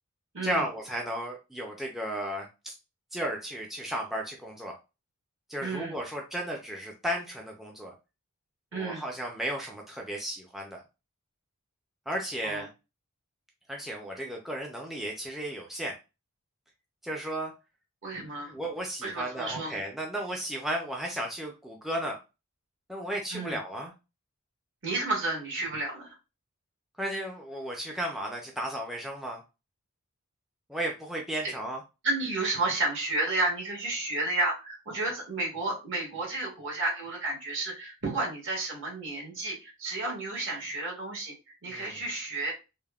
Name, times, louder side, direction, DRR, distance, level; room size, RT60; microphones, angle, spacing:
voice 1, 0.4-2.7 3.1-4.7 5.5-7.9 8.7-10.8 12.1-12.7 13.7-15.9 17.0-17.5 18.3-22.2 22.9-23.9 27.0-29.4 30.7-31.8 41.7-42.0, right 1 dB, ahead, 0 dB, 0.4 m, -34 dB
voice 2, 5.6-5.9 8.7-9.0 12.4-12.6 18.0-18.5 19.0-19.8 23.3-23.6 24.8-26.1 32.0-41.3 41.6-42.5, right 2 dB, 60° right, -1 dB, 1.4 m, -31 dB
3.4 x 2.1 x 2.3 m, 0.27 s
head